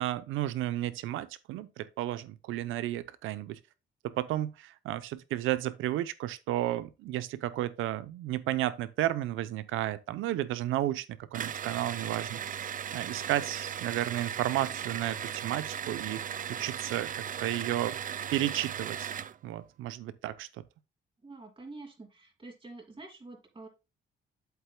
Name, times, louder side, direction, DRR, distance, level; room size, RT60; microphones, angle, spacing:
voice 1, 0.0-3.6 4.0-11.1 11.3-12.7 12.9-16.2 16.5-18.0 18.3-19.1 19.4-20.5, right 14 dB, 90° right, 0.7 m, -32 dB
sound 1, 11.3-19.4, right 9 dB, 40° right, 0.5 m, -37 dB
voice 2, 21.2-23.7, right 3 dB, 25° right, 2.7 m, -47 dB
8.0 x 7.9 x 2.3 m
cardioid pair, 90°, 20 cm